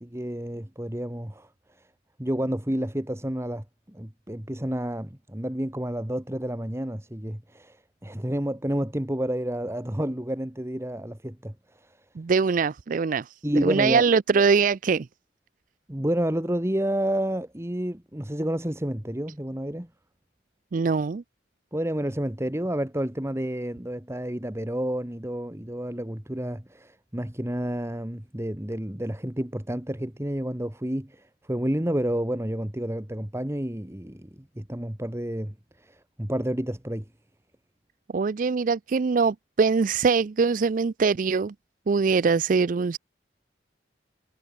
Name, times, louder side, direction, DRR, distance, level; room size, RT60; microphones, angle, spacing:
voice 1, 0.0-1.5 1.8-1.9 2.2-12.0 13.4-14.0 15.9-19.9 21.7-34.3 34.5-37.0, right 1 dB, 15° right, 1.5 m, -30 dB
voice 2, 12.2-13.3 13.6-15.1 20.7-21.2 38.1-41.5 41.9-43.0, right 5 dB, 45° right, 0.4 m, -22 dB
head